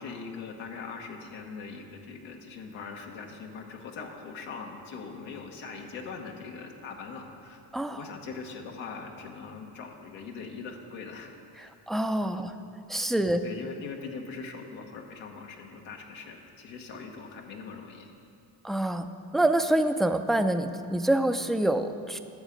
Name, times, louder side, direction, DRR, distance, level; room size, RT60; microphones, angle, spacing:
voice 1, 0.0-7.6 7.9-11.7 12.3-12.4 13.1-18.1, left 5 dB, 90° left, 1 dB, 1.2 m, -41 dB
voice 2, 11.9-12.5 12.9-13.4 18.6-19.1 19.3-22.2, right 1 dB, ahead, 8 dB, 0.4 m, -26 dB
11.5 x 7.3 x 5.1 m, 2.5 s
supercardioid pair, 65°, 45 cm